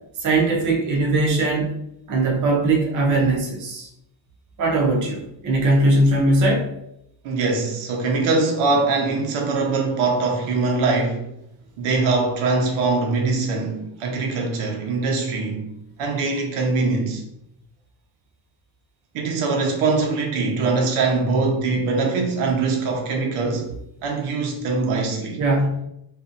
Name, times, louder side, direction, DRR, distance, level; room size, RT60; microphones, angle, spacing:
voice 1, 0.2-1.7 2.1-3.9 4.6-6.7 25.4-25.8, right 2 dB, 40° right, 0.6 m, -20 dB
voice 2, 7.2-11.3 11.8-15.7 16.0-17.2 19.1-23.7 24.0-25.4, right 3 dB, 90° right, 0.7 m, -22 dB
2.6 x 2.3 x 2.5 m
cardioid pair, 180°, 49 cm